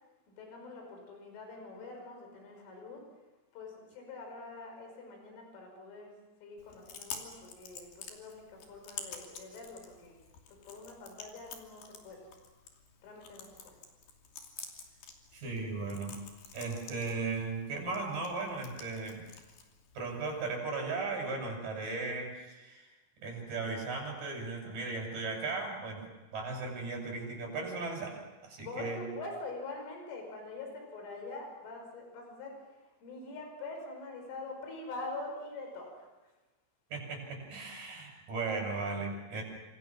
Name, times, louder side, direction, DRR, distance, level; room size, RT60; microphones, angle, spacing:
voice 1, 0.3-3.1 3.5-10.2 10.5-12.3 13.0-13.8 28.6-36.3, left 3 dB, 70° left, 2 dB, 7.7 m, -45 dB
Chewing mastication, 6.6-20.6, left 6 dB, 55° left, 4.3 m, -50 dB
voice 2, 15.3-16.2 16.5-19.2 19.9-22.9 23.2-26.0 26.3-29.0 36.9-39.4, right 3 dB, 40° right, 0 dB, 9.5 m, -37 dB
29.0 x 27.0 x 6.3 m, 1.1 s
omnidirectional pair, 5.8 m